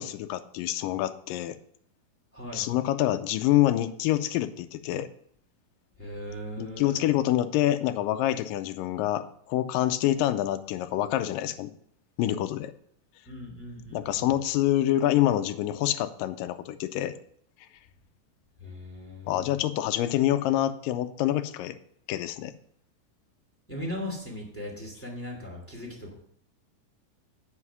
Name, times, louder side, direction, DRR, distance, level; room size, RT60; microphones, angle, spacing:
voice 1, 0.0-1.5 2.5-5.1 6.6-11.7 12.2-12.7 13.9-17.1 19.3-21.8 22.1-22.5, left 13 dB, 80° left, 9 dB, 2.2 m, -26 dB
voice 2, 2.3-2.7 6.0-7.0 13.3-14.3 18.6-19.5 23.7-26.1, left 1 dB, 5° left, -1 dB, 2.0 m, -38 dB
9.7 x 5.6 x 6.0 m, 0.65 s
omnidirectional pair, 4.1 m